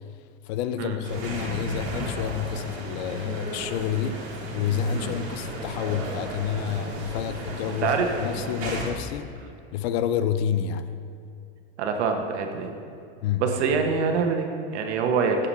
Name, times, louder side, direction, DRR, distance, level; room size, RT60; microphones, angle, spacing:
voice 1, 0.5-4.2 4.5-9.3 9.7-10.9 13.2-13.4, left 8 dB, 70° left, 11 dB, 0.6 m, -29 dB
sound 1, 1.0-8.9, right 1 dB, 40° right, 2.2 m, -34 dB
voice 2, 11.8-12.7 13.4-15.5, right 5 dB, 90° right, 4 dB, 1.2 m, -25 dB
7.2 x 7.1 x 5.4 m, 2.5 s
supercardioid pair, 135°, 33 cm